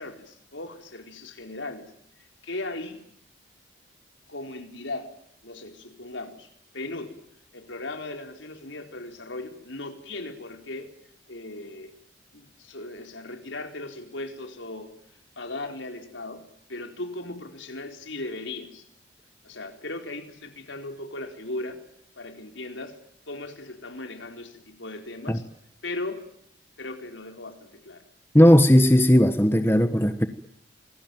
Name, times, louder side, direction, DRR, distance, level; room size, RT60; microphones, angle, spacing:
voice 1, 0.0-1.9 2.2-3.0 4.3-5.2 5.4-6.5 6.7-7.2 7.5-10.9 11.3-12.0 12.3-14.9 15.4-18.9 19.4-21.8 22.2-23.0 23.3-25.5 25.8-26.3 26.8-28.0, left 2 dB, 80° left, 5 dB, 4.4 m, -37 dB
voice 2, 28.3-30.3, equal, 10° left, 9 dB, 1.3 m, -17 dB
28.0 x 21.5 x 9.3 m, 0.70 s
head